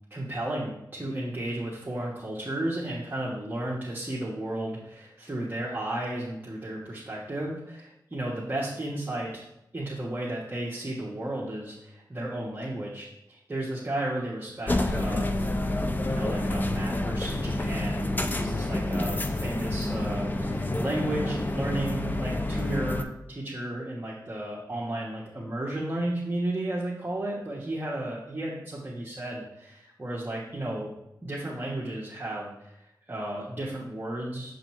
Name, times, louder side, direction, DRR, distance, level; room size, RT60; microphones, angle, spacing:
voice 1, 0.1-9.4 9.7-15.5 16.0-18.1 18.4-30.9 31.2-32.8 33.1-34.5, right 1 dB, 25° right, -6 dB, 1.2 m, -33 dB
sound 1, 14.7-23.0, left 1 dB, 25° left, 0.6 m, -28 dB
7.0 x 5.2 x 3.1 m, 0.86 s
wide cardioid pair, 90°, 8 cm